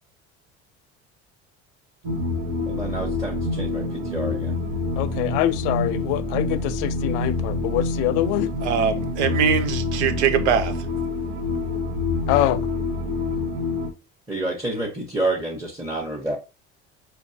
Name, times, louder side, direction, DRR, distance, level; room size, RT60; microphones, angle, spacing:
sound 1, 2.0-13.9, left 2 dB, 70° right, 1.1 m, -27 dB
voice 1, 2.7-4.5 14.3-16.4, right 2 dB, 10° right, 1.1 m, -28 dB
voice 2, 5.0-8.5 12.3-12.6, left 14 dB, 70° left, 0.5 m, -24 dB
voice 3, 8.6-10.7, right 7 dB, 90° right, 0.7 m, -22 dB
4.5 x 3.1 x 2.8 m
hypercardioid pair, 75°, 34 cm